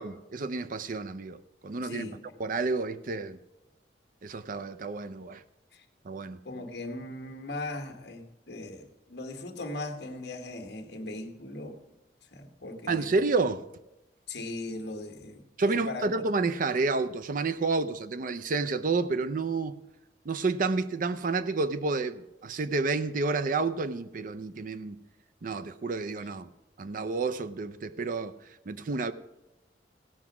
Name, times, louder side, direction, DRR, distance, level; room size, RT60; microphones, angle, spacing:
voice 1, 0.0-2.1 2.4-3.4 4.2-5.4 6.0-6.4 12.9-13.6 15.6-19.8 20.3-25.0 25.4-26.5 26.8-28.4 28.7-29.1, right 3 dB, 50° right, 0.5 m, -30 dB
voice 2, 1.8-2.2 5.7-5.8 6.4-11.8 12.3-13.1 14.3-16.1, left 2 dB, 70° left, 1.4 m, -39 dB
16.0 x 6.0 x 6.0 m
head